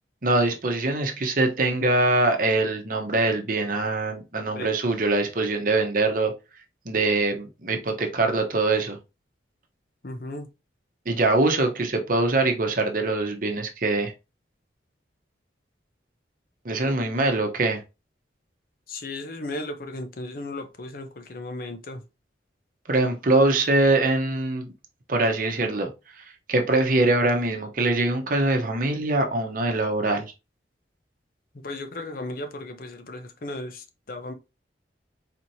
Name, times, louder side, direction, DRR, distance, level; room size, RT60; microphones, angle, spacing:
voice 1, 0.2-6.3 6.9-9.0 11.1-14.1 16.6-17.8 22.9-24.7 25.1-25.9 26.5-30.3, right 2 dB, 50° right, 0.8 m, -23 dB
voice 2, 10.0-10.5 18.9-22.0 31.5-34.3, left 2 dB, 50° left, 0.7 m, -35 dB
4.2 x 3.0 x 2.7 m
head